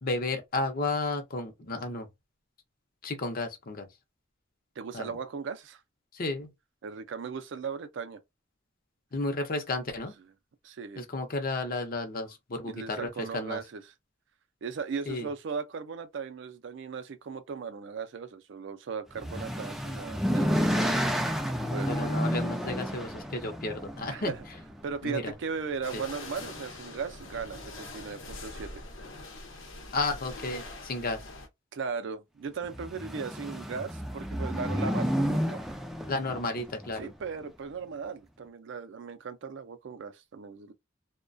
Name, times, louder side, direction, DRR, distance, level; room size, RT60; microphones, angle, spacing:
voice 1, 0.0-2.1 3.0-3.9 4.9-5.2 6.1-6.5 9.1-10.1 11.0-13.6 15.1-15.3 21.8-24.3 25.0-25.3 25.9-26.0 29.9-31.2 36.1-37.1, left 2 dB, 50° left, 0.6 m, -32 dB
voice 2, 4.8-5.8 6.8-8.2 10.6-11.0 12.6-13.8 14.6-21.1 21.7-22.1 24.1-24.4 24.8-28.8 31.7-35.6 37.0-40.7, right 5 dB, 70° right, 0.4 m, -37 dB
sound 1, 19.1-25.3 26.3-26.7 27.1-27.2 27.5-27.6 32.6-37.0, equal, ahead, 0.3 m, -31 dB
sound 2, 25.8-31.5, left 2 dB, 85° left, 0.8 m, -43 dB
2.2 x 2.1 x 2.5 m
head